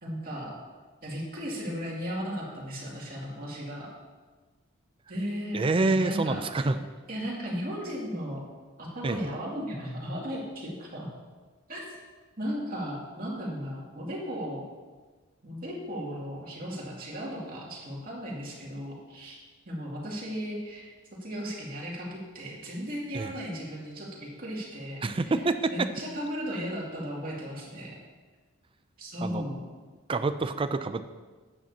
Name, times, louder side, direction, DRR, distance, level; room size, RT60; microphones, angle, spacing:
voice 1, 0.0-0.6 1.0-3.9 5.1-5.6 5.9-6.7 7.1-8.4 8.8-11.1 11.7-12.0 12.4-14.6 15.4-19.4 19.6-20.9 21.2-25.4 25.7-28.0 29.0-29.6, equal, 40° right, -4 dB, 2.5 m, -36 dB
voice 2, 5.5-6.8 9.0-9.3 23.1-23.3 25.0-25.9 29.2-29.4 30.1-31.0, right 3 dB, 25° right, 10 dB, 0.4 m, -27 dB
12.0 x 9.0 x 2.8 m, 1.4 s
head